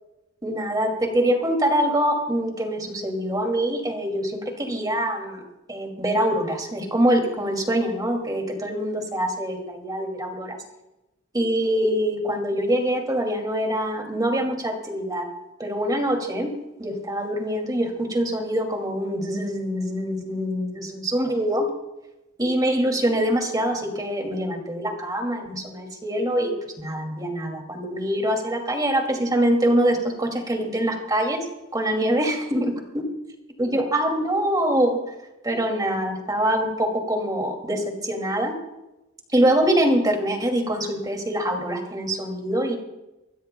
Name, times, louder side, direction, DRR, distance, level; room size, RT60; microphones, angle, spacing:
voice 1, 0.4-5.4 5.7-10.6 11.3-15.3 15.6-16.5 16.8-21.7 22.4-26.5 26.8-31.4 31.7-32.7 33.6-35.0 35.4-38.5 39.3-42.8, right 1 dB, 20° right, 2 dB, 2.6 m, -24 dB
25.5 x 15.5 x 2.3 m, 0.98 s
head